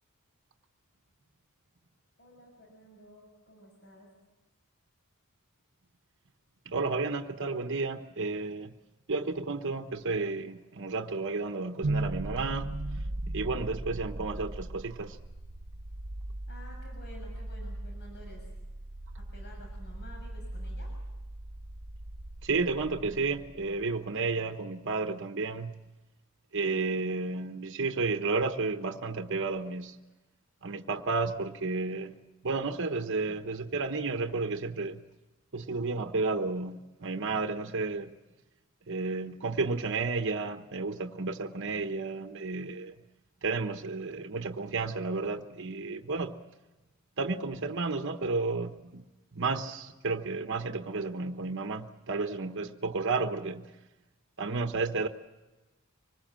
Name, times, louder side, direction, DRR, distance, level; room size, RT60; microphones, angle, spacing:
voice 1, 2.2-4.1 16.5-18.5 19.2-20.9, equal, 50° left, 6.7 m, -51 dB
voice 2, 6.7-8.7 9.1-15.2 22.4-25.7 26.5-30.0 30.6-32.1 32.4-35.0 35.5-38.1 38.9-42.9 43.4-46.3 47.2-49.0 49.3-53.7 54.4-55.1, right 3 dB, 55° right, 1.1 m, -32 dB
sound 1, 11.8-23.9, right 2 dB, 85° right, 1.2 m, -38 dB
25.0 x 20.5 x 7.6 m
head